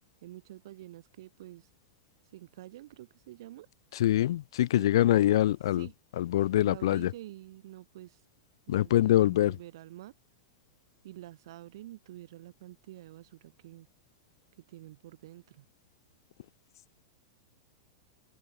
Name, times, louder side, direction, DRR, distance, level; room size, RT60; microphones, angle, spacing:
voice 1, 0.2-1.7 2.3-3.7 4.7-5.1 5.7-5.9 6.5-8.2 8.7-10.1 11.0-13.9 14.7-15.6, right 15 dB, 65° right, 2.6 m, -48 dB
voice 2, 3.9-5.9 6.2-7.1 8.7-9.6, left 13 dB, 75° left, 0.6 m, -24 dB
open air
supercardioid pair, 160°, 3 cm